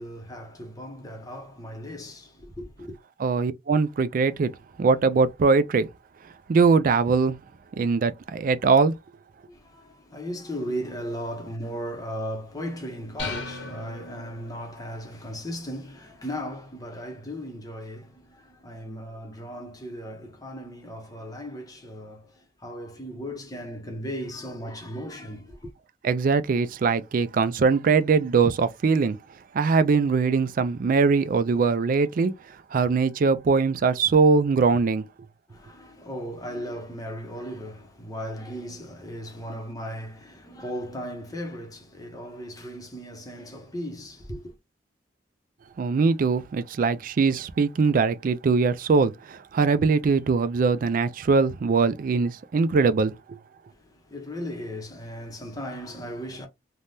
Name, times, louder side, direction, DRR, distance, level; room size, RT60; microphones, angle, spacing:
voice 1, 0.0-3.0 9.5-25.7 35.5-44.5 53.7-56.5, equal, 20° left, 0.7 m, -37 dB
voice 2, 3.2-4.5 4.8-5.9 6.5-7.4 7.8-8.9 26.0-29.2 29.5-32.3 32.7-35.0 45.8-53.4, right 4 dB, 50° right, 0.3 m, -22 dB
sound 1, 13.2-14.8, left 3 dB, 75° left, 1.0 m, -36 dB
3.3 x 2.2 x 2.6 m
head